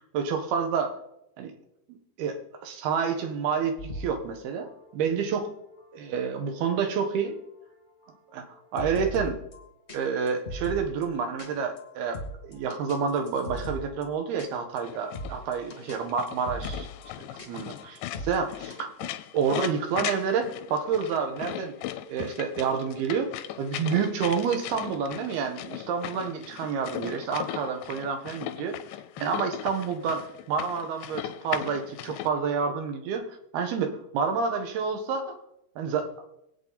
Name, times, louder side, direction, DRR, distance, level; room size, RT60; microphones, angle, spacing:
voice 1, 0.1-1.0 1.4-1.5 2.2-5.5 5.9-7.4 8.3-8.4 8.7-9.4 9.9-16.9 17.4-18.0 18.3-18.5 18.8-18.9 19.3-21.7 22.1-23.3 23.6-28.8 29.2-30.2 30.5-35.4 35.8-36.1, right 6 dB, 65° right, 6 dB, 3.3 m, -29 dB
sound 1, 3.8-9.6 9.9-10.0 10.3-11.0 11.4-11.5 11.8-11.9 12.1-14.1 14.4-14.5 14.8-14.9 15.1-16.0 16.3-17.1 17.4-18.8, equal, 35° left, 1.0 m, -40 dB
sound 2, 14.8-32.3, left 13 dB, 90° left, 3.1 m, -38 dB
24.5 x 8.9 x 4.2 m, 0.81 s
omnidirectional pair, 5.1 m